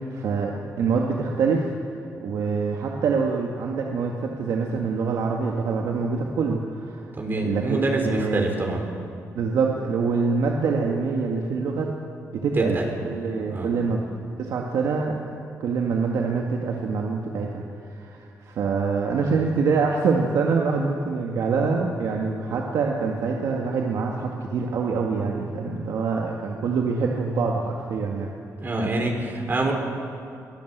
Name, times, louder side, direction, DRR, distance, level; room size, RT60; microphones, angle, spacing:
voice 1, 0.0-1.7 2.2-7.1 7.4-8.5 9.3-11.9 12.3-14.0 14.4-15.3 15.6-28.3, right 4 dB, 80° right, 0 dB, 1.9 m, -25 dB
voice 2, 7.2-8.9 12.5-12.8 13.5-13.7 28.6-29.7, right 2 dB, 40° right, 1 dB, 4.5 m, -25 dB
23.5 x 17.0 x 8.1 m, 2.6 s
cardioid pair, 95°, 6 cm